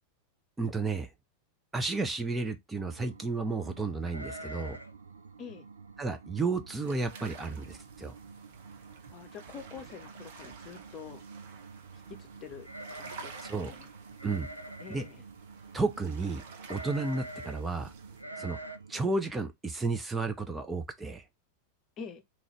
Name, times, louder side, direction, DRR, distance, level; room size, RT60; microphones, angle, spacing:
voice 1, 0.6-1.1 1.7-4.8 6.0-8.1 13.4-13.7 14.2-14.5 14.9-15.0 15.7-16.4 16.7-17.9 18.4-18.6 18.9-21.2, right 3 dB, 10° right, 0.5 m, -32 dB
sound 1, 2.8-19.1, right 5 dB, 70° right, 0.4 m, -51 dB
sound 2, 4.1-5.0 5.3-5.4 5.8-6.1 6.7-6.8 7.1-7.6 7.9-8.0 9.1-9.2 9.5-9.9 12.6-13.6 14.2-15.1 16.6-17.6 18.2-18.8, right 1 dB, 90° left, 0.6 m, -44 dB
sound 3, 6.8-18.2, right 5 dB, 55° right, 0.9 m, -51 dB
voice 2, 9.1-11.2 12.1-13.9 14.8-15.2 22.0-22.2, left 6 dB, 30° left, 0.8 m, -46 dB
3.9 x 2.9 x 3.1 m
figure-of-eight pair, 90°, 0 cm